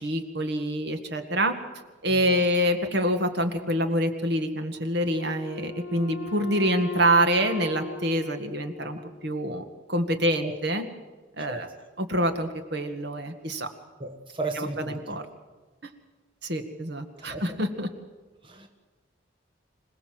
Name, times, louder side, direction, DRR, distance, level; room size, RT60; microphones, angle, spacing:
voice 1, 0.0-1.5 2.0-9.6 9.9-10.8 11.4-11.7 12.0-13.7 14.6-15.2 16.4-17.9, equal, 60° right, 7 dB, 1.9 m, -26 dB
voice 2, 2.1-2.5 10.4-10.5 11.4-11.7 14.0-15.0 17.2-17.6 18.4-18.7, right 2 dB, 25° right, 4 dB, 1.6 m, -35 dB
Wind instrument woodwind instrument, 5.0-9.5, left 2 dB, 75° left, 1.6 m, -39 dB
26.5 x 18.0 x 7.7 m, 1.3 s
head